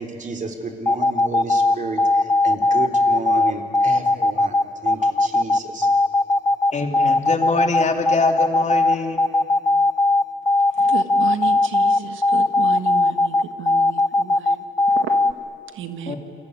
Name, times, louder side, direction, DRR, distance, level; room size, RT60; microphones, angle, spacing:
voice 1, 0.0-5.9, right 3 dB, 40° right, 5 dB, 3.6 m, -32 dB
sound 1, 0.9-15.3, left 2 dB, 15° left, 1.2 m, -18 dB
voice 2, 6.7-9.2 16.1-16.2, left 3 dB, 35° left, 4 dB, 3.0 m, -24 dB
voice 3, 10.7-15.2 15.7-16.1, right 9 dB, 80° right, 8 dB, 1.7 m, -33 dB
28.0 x 22.0 x 9.6 m, 2.4 s
cardioid pair, 90°, 20 cm